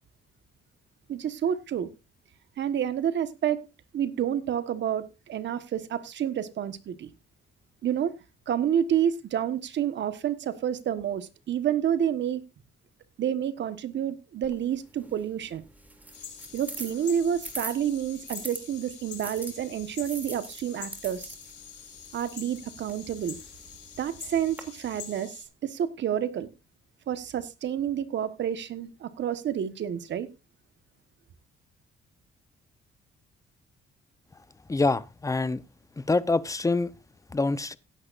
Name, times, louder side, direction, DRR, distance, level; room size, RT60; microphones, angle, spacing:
voice 1, 1.1-1.9 2.6-3.6 3.9-7.1 7.8-8.1 8.5-12.4 13.2-15.6 16.5-21.3 22.1-23.4 24.0-26.5 27.1-30.3, right 9 dB, 65° right, 1.4 m, -29 dB
sound 1, 14.4-18.6 19.2-24.6, right 1 dB, 10° right, 2.8 m, -43 dB
sound 2, 16.1-25.4, left 7 dB, 60° left, 3.7 m, -45 dB
voice 2, 34.7-35.6 36.0-36.9 37.3-37.8, left 3 dB, 15° left, 0.8 m, -25 dB
16.0 x 11.0 x 2.6 m
cardioid pair, 90°, 20 cm